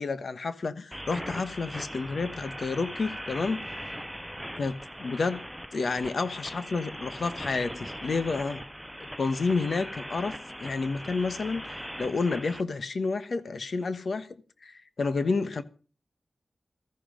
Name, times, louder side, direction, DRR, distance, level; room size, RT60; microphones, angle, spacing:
voice 1, 0.0-3.6 4.6-5.4 5.7-8.6 9.2-15.6, left 4 dB, 75° left, 1.2 m, -30 dB
sound 1, 0.9-12.6, equal, ahead, 0.6 m, -40 dB
15.5 x 14.0 x 5.1 m
cardioid pair, 60°, 0 cm